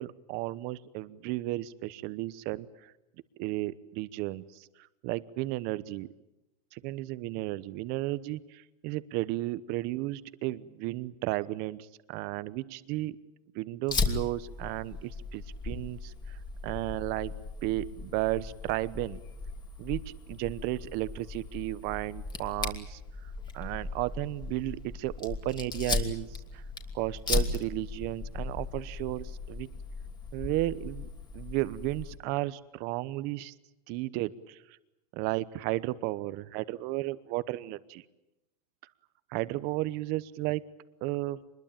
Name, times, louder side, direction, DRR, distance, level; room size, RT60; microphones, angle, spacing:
voice 1, 0.0-2.9 3.4-6.1 6.7-13.2 13.5-17.3 17.6-19.2 19.8-23.0 23.5-26.6 26.9-29.7 30.3-31.1 31.3-33.5 33.9-34.8 35.1-38.0 39.3-40.6 41.0-41.4, right 17 dB, 50° right, 16 dB, 1.0 m, -34 dB
Fire, 13.9-32.2, left 4 dB, 20° left, 3.0 m, -37 dB
25.0 x 21.5 x 8.9 m, 0.94 s
supercardioid pair, 125°, 21 cm